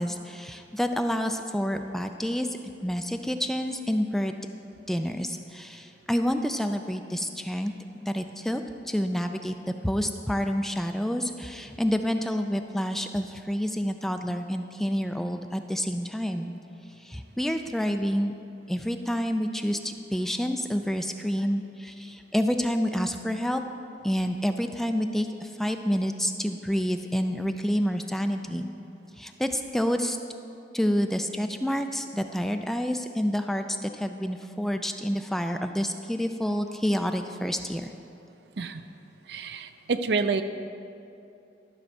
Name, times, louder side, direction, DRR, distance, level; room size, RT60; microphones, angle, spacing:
voice 1, 0.0-2.5 2.8-4.4 4.9-7.7 8.0-8.6 8.9-9.5 9.8-16.5 17.0-18.3 18.7-23.6 24.0-28.7 29.2-30.2 30.7-37.9, equal, ahead, 6 dB, 0.3 m, -28 dB
voice 2, 39.3-40.4, right 4 dB, 65° right, 10 dB, 0.4 m, -28 dB
12.0 x 4.4 x 6.4 m, 2.7 s
head